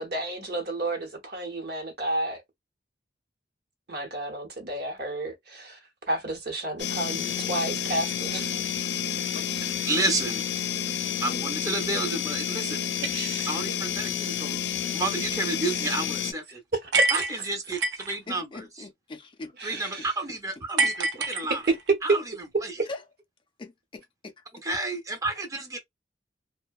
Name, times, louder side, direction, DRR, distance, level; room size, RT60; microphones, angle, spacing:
voice 1, 0.0-2.4 3.9-5.8 6.1-8.6 13.1-13.5 15.6-15.7 16.8-17.2 19.6-20.1, right 1 dB, 65° right, 0.9 m, -32 dB
sound 1, 6.8-16.3, left 8 dB, 85° left, 0.5 m, -30 dB
voice 2, 9.9-10.5 11.2-12.8 13.5-14.6 14.9-16.6 17.1-18.6 19.6-21.6 22.0-22.2 22.6-22.7 24.6-25.8, right 2 dB, 20° right, 0.6 m, -31 dB
sound 2, 16.9-18.2 20.8-21.9, right 3 dB, 85° right, 0.4 m, -25 dB
voice 3, 18.3-19.8 20.8-20.9 22.9-23.0 23.6-24.4, left 3 dB, 30° left, 0.4 m, -41 dB
2.6 x 2.1 x 2.3 m
head